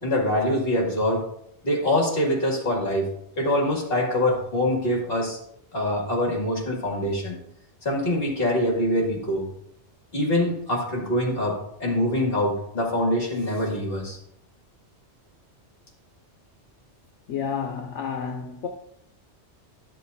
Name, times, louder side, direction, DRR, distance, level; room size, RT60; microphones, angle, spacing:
voice 1, 0.0-1.2 1.6-3.1 3.4-5.4 5.7-7.4 7.8-9.4 10.1-14.2, left 1 dB, 55° left, 2.3 m, -24 dB
voice 2, 17.3-18.7, left 7 dB, 85° left, 1.0 m, -30 dB
12.0 x 6.6 x 2.7 m
omnidirectional pair, 1.2 m